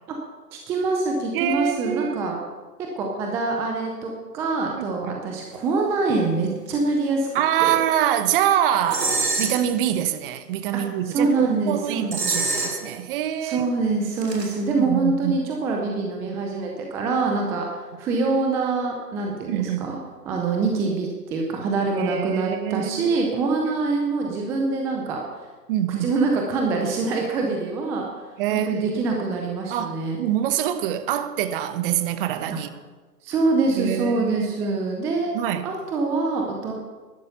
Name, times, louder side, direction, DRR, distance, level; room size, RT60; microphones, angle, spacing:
voice 1, 0.5-2.4 3.0-7.3 7.6-7.8 10.7-12.5 13.4-20.0 20.3-25.5 25.9-30.2 32.5-32.6 33.2-35.3 35.6-36.8, right 3 dB, 5° right, 1 dB, 0.5 m, -25 dB
voice 2, 1.3-2.4 4.8-5.4 7.3-13.7 14.8-15.4 19.5-19.9 22.0-23.2 23.6-23.8 25.7-26.1 28.4-29.0 29.7-32.7 33.7-34.8 35.3-35.7, right 11 dB, 35° right, 11 dB, 1.1 m, -25 dB
sound 1, 8.9-9.6 12.1-13.0 14.2-14.6, right 3 dB, 85° right, 3.2 m, -25 dB
12.0 x 11.5 x 6.8 m, 1.3 s
hypercardioid pair, 130°, 48 cm